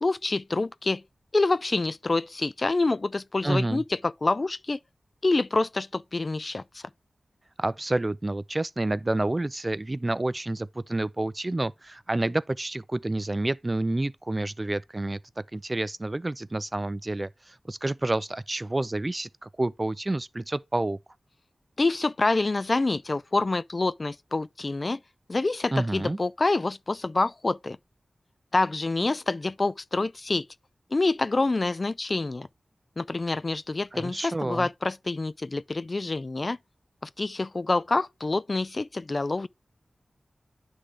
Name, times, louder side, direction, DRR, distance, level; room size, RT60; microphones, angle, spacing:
voice 1, 0.0-1.0 1.3-4.8 5.2-6.8 21.8-25.0 25.3-27.8 28.5-30.4 30.9-32.5 33.0-36.6 37.0-39.5, left 3 dB, 50° left, 0.3 m, -27 dB
voice 2, 3.4-3.8 7.6-15.2 15.5-21.0 25.7-26.2 33.9-34.7, right 2 dB, 35° right, 0.4 m, -29 dB
9.8 x 3.8 x 3.3 m
cardioid pair, 40°, 0 cm